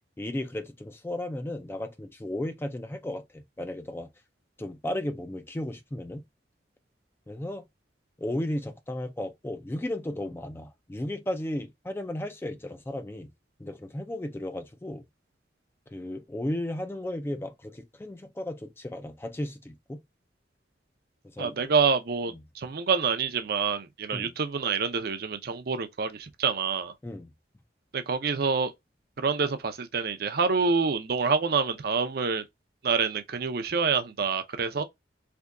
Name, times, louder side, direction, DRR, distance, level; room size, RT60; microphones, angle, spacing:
voice 1, 0.2-4.1 4.6-6.2 7.3-7.6 8.2-13.3 13.6-15.0 15.9-20.0 21.2-21.7 22.3-22.4 24.1-24.3 27.0-27.3 34.8-34.9, left 1 dB, 15° left, 0.3 m, -34 dB
voice 2, 21.4-26.9 27.9-28.7 29.2-32.4 32.8-34.8, right 5 dB, 60° right, 0.6 m, -27 dB
3.4 x 2.7 x 2.5 m
head